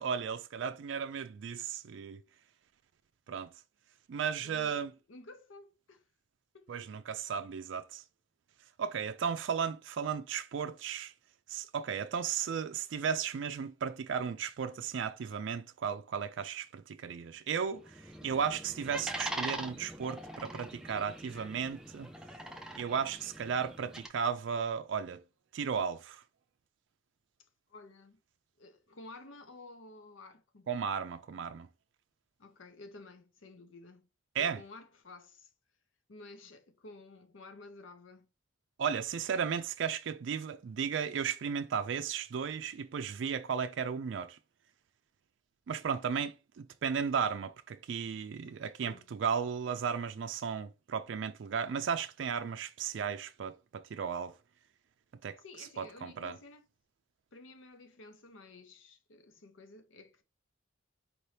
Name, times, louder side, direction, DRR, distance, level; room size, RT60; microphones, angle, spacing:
voice 1, 0.0-2.2 3.3-3.5 4.1-4.9 6.7-8.0 8.8-11.1 11.5-22.1 22.7-25.2 25.5-26.2 30.7-31.7 34.4-34.6 38.8-44.4 45.7-54.3 55.2-55.4 55.8-56.4, right 7 dB, 65° right, 0.4 m, -35 dB
voice 2, 4.4-6.0 6.5-6.8 27.4-28.2 28.6-30.7 32.4-34.1 34.4-35.5 36.1-38.3 48.4-48.6 48.8-49.1 55.4-56.7 57.3-60.2, left 2 dB, 80° left, 0.7 m, -53 dB
sound 1, 17.7-24.1, right 1 dB, 5° right, 0.5 m, -43 dB
4.5 x 2.8 x 3.2 m
head